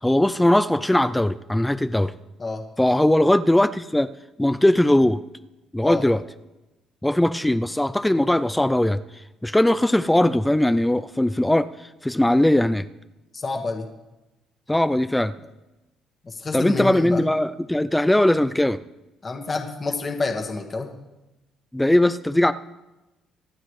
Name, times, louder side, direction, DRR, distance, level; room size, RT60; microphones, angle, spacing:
voice 1, 0.0-2.1 2.8-4.1 4.4-5.2 5.7-6.2 7.0-9.0 9.4-12.9 14.7-15.3 16.5-18.8 21.7-22.5, left 1 dB, 5° left, 11 dB, 0.5 m, -20 dB
voice 2, 13.3-13.9 16.2-17.2 19.2-20.9, left 3 dB, 30° left, 3 dB, 1.6 m, -28 dB
25.0 x 9.5 x 3.3 m, 1.0 s
cardioid pair, 100°, 0 cm